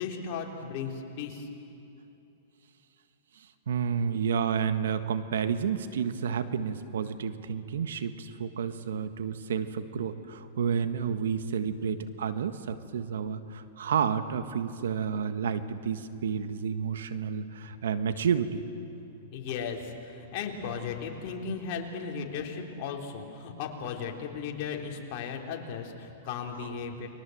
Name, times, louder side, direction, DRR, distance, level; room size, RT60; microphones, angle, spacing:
voice 1, 0.0-1.5 19.3-27.1, left 6 dB, 45° left, 1 dB, 3.4 m, -36 dB
voice 2, 3.4-18.6 26.6-26.7, right 7 dB, 85° right, 10 dB, 1.5 m, -30 dB
29.5 x 22.5 x 7.9 m, 2.8 s
hypercardioid pair, 150°, 0 cm